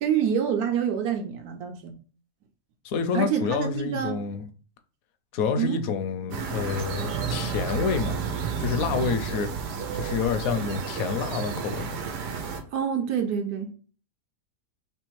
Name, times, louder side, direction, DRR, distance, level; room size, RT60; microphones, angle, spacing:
voice 1, 0.0-2.0 3.1-4.3 5.6-5.8 12.7-13.7, right 8 dB, 70° right, 1.2 m, -27 dB
voice 2, 2.8-4.5 5.3-8.2 8.6-9.5 9.9-12.0, left 6 dB, 70° left, 1.0 m, -28 dB
sound 1, 6.3-12.6, right 6 dB, 90° right, 1.4 m, -31 dB
3.4 x 3.2 x 4.6 m
omnidirectional pair, 1.7 m